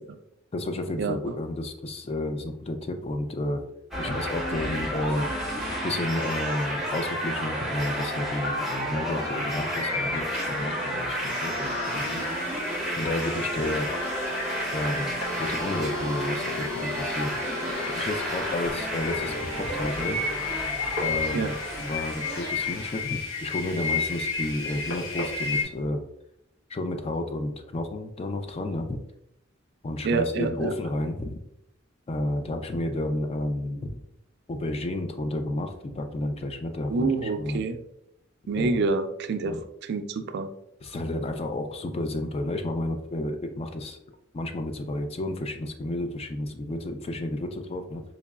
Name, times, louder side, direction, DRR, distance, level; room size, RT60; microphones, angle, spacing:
voice 1, 0.5-3.6 4.0-5.3 5.8-12.4 13.0-13.9 14.7-17.4 17.9-20.2 21.0-26.0 26.7-29.0 29.8-31.4 32.1-34.0 34.5-37.6 38.6-38.9 39.4-39.6 40.8-48.0, left 1 dB, 30° left, 6 dB, 0.3 m, -31 dB
sound 1, 3.9-23.0, equal, ahead, 0.7 m, -31 dB
sound 2, 5.1-5.8 6.1-20.7 21.0-23.0, left 3 dB, 55° left, 0.9 m, -38 dB
sound 3, 11.8-25.6, left 4 dB, 80° left, 1.1 m, -34 dB
voice 2, 30.0-30.7 36.9-37.8 38.5-39.6 39.8-40.5, right 3 dB, 55° right, 9 dB, 0.3 m, -27 dB
3.8 x 3.0 x 2.3 m, 0.79 s
head